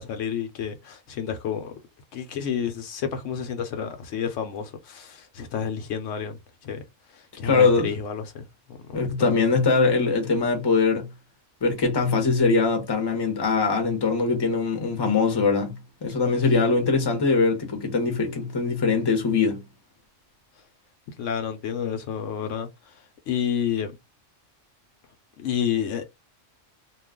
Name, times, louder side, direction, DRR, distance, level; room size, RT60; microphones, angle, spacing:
voice 1, 0.0-1.7 2.1-6.4 6.6-6.8 7.1-9.3 21.2-22.7 23.3-23.9 25.4-26.1, left 8 dB, 75° left, 0.9 m, -30 dB
voice 2, 7.4-7.9 8.9-11.1 11.6-19.6, left 4 dB, 25° left, 0.7 m, -22 dB
2.4 x 2.3 x 3.5 m
omnidirectional pair, 1.3 m